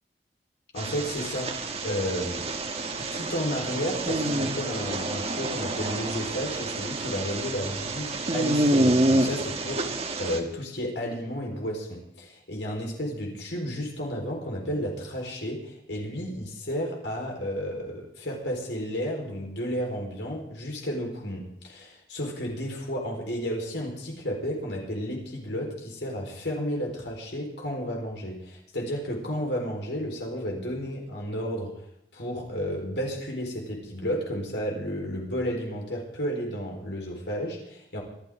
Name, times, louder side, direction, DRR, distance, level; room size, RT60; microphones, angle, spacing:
voice 1, 0.7-2.5 3.0-9.8 10.2-31.8 32.1-38.0, equal, 85° left, -1 dB, 4.5 m, -32 dB
sound 1, 0.8-10.4, right 1 dB, 35° right, 1.7 m, -28 dB
26.0 x 12.5 x 3.8 m, 0.78 s
head